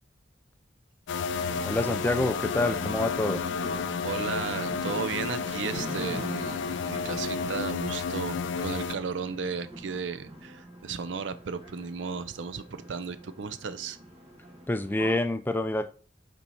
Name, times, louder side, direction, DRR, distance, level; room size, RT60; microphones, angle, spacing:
sound 1, 1.1-9.0, left 6 dB, 80° left, 0.4 m, -32 dB
sound 2, 1.2-15.2, right 1 dB, 35° right, 1.9 m, -42 dB
voice 1, 1.6-3.4 14.7-15.9, left 2 dB, 10° left, 0.4 m, -27 dB
voice 2, 4.0-14.0, right 5 dB, 85° right, 0.5 m, -35 dB
5.7 x 4.5 x 4.2 m
head